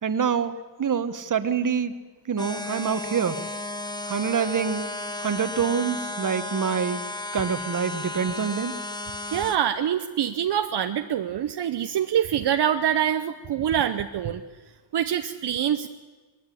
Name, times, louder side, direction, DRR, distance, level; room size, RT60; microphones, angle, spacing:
voice 1, 0.0-1.9 2.3-3.4 4.1-4.9 5.2-7.0 7.3-8.7, right 6 dB, 45° right, 11 dB, 1.3 m, -26 dB
sound 1, 2.4-9.6, left 2 dB, 10° left, 1.0 m, -34 dB
voice 2, 9.3-14.4 14.9-15.9, right 9 dB, 65° right, 8 dB, 0.8 m, -25 dB
20.5 x 15.5 x 10.0 m, 1.3 s
wide cardioid pair, 120°, 44 cm